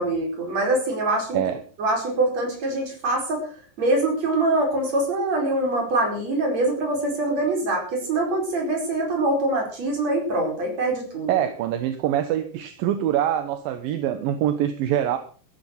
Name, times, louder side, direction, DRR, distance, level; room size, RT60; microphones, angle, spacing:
voice 1, 0.0-1.4 1.8-3.5 3.8-11.4, right 2 dB, 40° right, 2 dB, 5.8 m, -24 dB
voice 2, 11.3-15.2, right 11 dB, 70° right, 9 dB, 2.5 m, -24 dB
14.0 x 11.0 x 6.3 m, 0.41 s
omnidirectional pair, 4.8 m